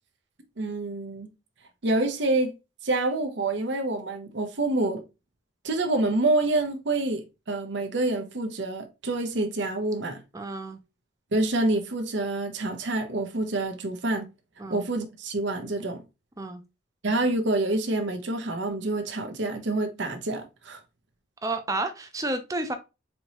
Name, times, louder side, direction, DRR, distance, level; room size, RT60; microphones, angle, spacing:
voice 1, 0.6-1.3 1.8-2.5 2.8-5.0 5.6-10.2 11.3-14.2 14.7-16.0 17.0-20.8, right 2 dB, 65° right, 0.7 m, -27 dB
voice 2, 10.3-10.8 14.6-14.9 16.4-16.6 21.4-22.7, right 2 dB, 15° right, 0.5 m, -31 dB
4.4 x 2.7 x 2.9 m
head